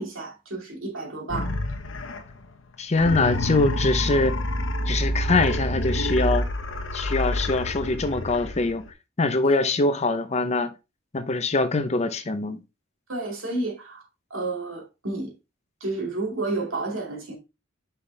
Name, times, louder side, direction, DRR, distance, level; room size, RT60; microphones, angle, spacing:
voice 1, 0.0-1.6 9.4-9.6 13.1-14.0 14.3-15.3 15.8-17.4, right 2 dB, 80° right, 2.4 m, -31 dB
sound 1, 1.3-2.4 2.9-8.9, left 1 dB, 70° left, 1.0 m, -28 dB
voice 2, 2.8-4.4 4.9-6.5 6.9-8.8 9.2-10.7 11.1-12.6, left 3 dB, 35° left, 0.7 m, -23 dB
5.8 x 5.6 x 3.3 m
head